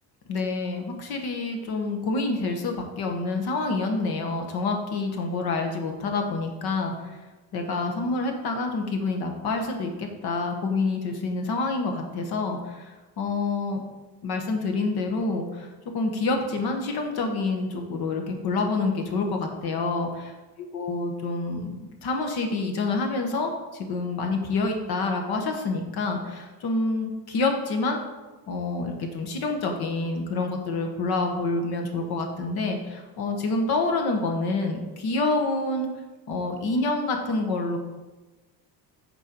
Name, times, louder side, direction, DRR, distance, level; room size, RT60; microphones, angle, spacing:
voice 1, 0.3-7.2 7.5-13.8 14.2-15.7 15.9-20.4 20.7-28.0 28.5-35.9 36.3-37.8, left 3 dB, 70° left, 4 dB, 1.5 m, -27 dB
7.5 x 4.7 x 5.3 m, 1.2 s
cardioid pair, 120°, 40 cm